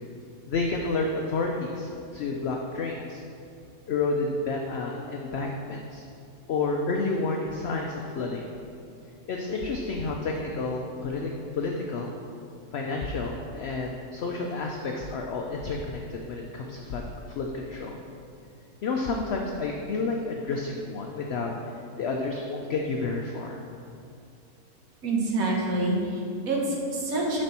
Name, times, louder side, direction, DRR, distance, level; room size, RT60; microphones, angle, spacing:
voice 1, 0.5-3.2 3.9-6.0 6.5-8.4 9.3-12.1 12.7-17.0 17.3-18.0 18.8-23.6, left 3 dB, 65° left, 1 dB, 0.6 m, -30 dB
voice 2, 25.0-27.4, right 2 dB, 65° right, -2 dB, 1.6 m, -27 dB
7.5 x 5.3 x 4.3 m, 2.5 s
omnidirectional pair, 1.6 m